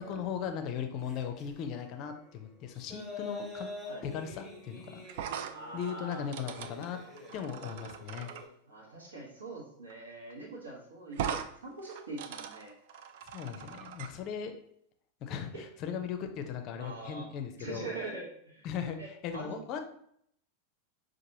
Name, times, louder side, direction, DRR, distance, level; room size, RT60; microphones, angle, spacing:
voice 1, 0.0-3.7 4.0-5.1 5.7-7.0 7.3-8.3 13.3-14.5 15.2-17.9 18.6-19.8, left 7 dB, 40° left, 7 dB, 0.5 m, -38 dB
sound 1, 1.0-1.5 2.5-8.5, left 2 dB, 5° right, 1.1 m, -46 dB
sound 2, 5.1-8.4 9.9-10.0 10.3-10.4 11.1-11.5 11.8-14.1, right 8 dB, 50° right, 0.3 m, -40 dB
voice 2, 5.5-6.3 8.7-12.7 16.8-17.3 17.6-18.7 19.0-19.6, right 3 dB, 75° right, -2 dB, 1.1 m, -43 dB
5.9 x 2.5 x 2.8 m, 0.69 s
figure-of-eight pair, 90°, 0 cm